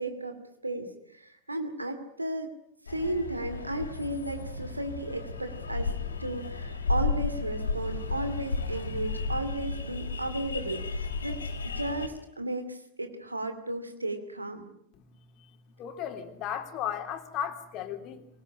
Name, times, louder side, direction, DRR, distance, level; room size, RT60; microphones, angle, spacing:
voice 1, 0.0-2.5 2.9-5.9 6.2-14.7, right 1 dB, 85° right, 9 dB, 2.6 m, -34 dB
sound 1, 2.9-12.1, left 4 dB, 75° left, 3.4 m, -33 dB
voice 2, 15.8-18.3, left 9 dB, 40° left, 7 dB, 3.3 m, -35 dB
25.0 x 18.5 x 9.8 m, 0.72 s
figure-of-eight pair, 90°, 0 cm